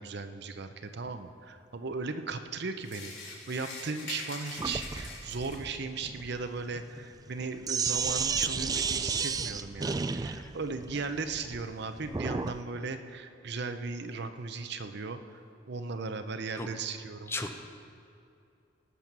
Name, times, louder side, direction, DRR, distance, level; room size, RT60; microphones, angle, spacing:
voice 1, 0.0-15.4 15.7-17.3, right 4 dB, 60° right, 8 dB, 0.7 m, -37 dB
sound 1, 2.8-5.8, left 3 dB, 85° left, 3.5 m, -43 dB
Sink (filling or washing), 4.6-12.6, right 5 dB, 20° right, 0.3 m, -33 dB
voice 2, 10.4-10.5 16.5-16.7 17.3-17.5, left 2 dB, 15° left, 5 dB, 0.7 m, -35 dB
18.5 x 7.0 x 6.1 m, 2.5 s
head